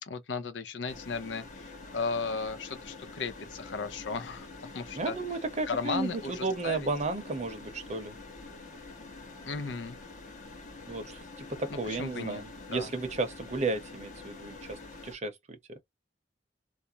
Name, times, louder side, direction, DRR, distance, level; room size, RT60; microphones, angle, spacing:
voice 1, 0.0-5.2 5.7-6.9 9.4-10.0 11.7-12.4 12.7-12.9, left 4 dB, 85° left, 0.6 m, -35 dB
sound 1, 0.9-15.2, left 3 dB, 45° left, 0.9 m, -46 dB
voice 2, 5.0-8.2 10.9-15.3 15.7-15.8, right 3 dB, 40° right, 0.7 m, -33 dB
2.5 x 2.0 x 2.7 m
head